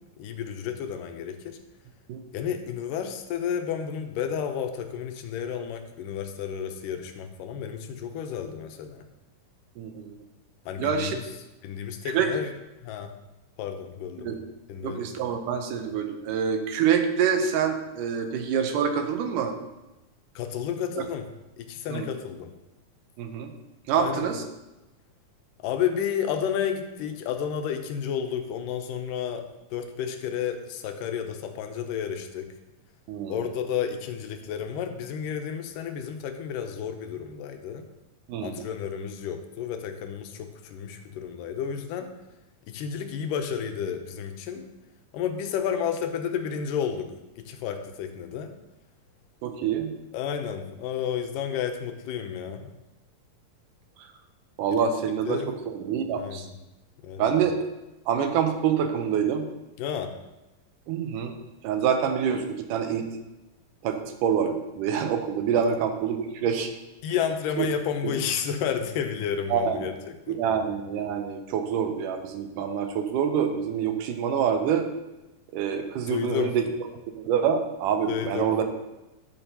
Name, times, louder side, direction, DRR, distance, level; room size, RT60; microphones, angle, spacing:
voice 1, 0.0-1.6 2.3-9.1 10.7-11.2 11.6-12.5 12.8-13.1 13.6-14.3 14.7-15.1 20.4-21.3 21.6-22.5 24.0-24.3 25.6-29.4 29.7-32.5 33.3-37.9 38.4-42.1 42.7-44.7 45.1-47.1 47.4-48.5 50.1-52.7 54.7-54.9 55.3-55.5 56.1-56.6 57.0-57.4 59.8-60.1 67.0-70.4 76.1-76.5 78.1-78.5, left 8 dB, 85° left, 6 dB, 2.3 m, -31 dB
voice 2, 9.8-10.2 10.8-11.2 12.0-12.3 14.2-14.4 14.8-19.6 21.9-22.1 23.2-23.5 23.9-24.4 33.1-33.4 38.3-38.6 49.4-49.9 54.6-56.5 57.2-57.6 58.1-59.5 60.9-61.3 61.6-63.1 63.8-66.7 67.6-67.7 68.0-68.1 69.5-69.9 70.3-74.9 75.5-76.6 77.2-78.6, right 7 dB, 80° right, 6 dB, 2.2 m, -26 dB
12.5 x 6.0 x 2.8 m, 1.0 s
omnidirectional pair, 3.8 m